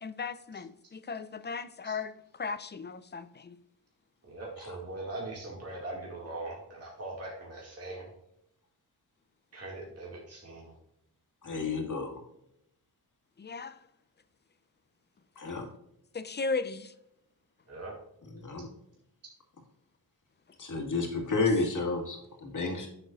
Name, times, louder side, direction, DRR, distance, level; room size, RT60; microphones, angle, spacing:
voice 1, 0.0-3.6 13.4-13.8 16.1-16.9 21.4-21.5, left 4 dB, 25° left, 0.5 m, -36 dB
voice 2, 4.2-8.1 9.5-10.7 17.7-18.0, right 2 dB, 40° right, 2.2 m, -41 dB
voice 3, 11.4-12.2 15.4-15.7 18.3-18.7 20.6-22.9, left 3 dB, 50° left, 2.0 m, -31 dB
9.1 x 6.4 x 2.5 m
wide cardioid pair, 110°, 39 cm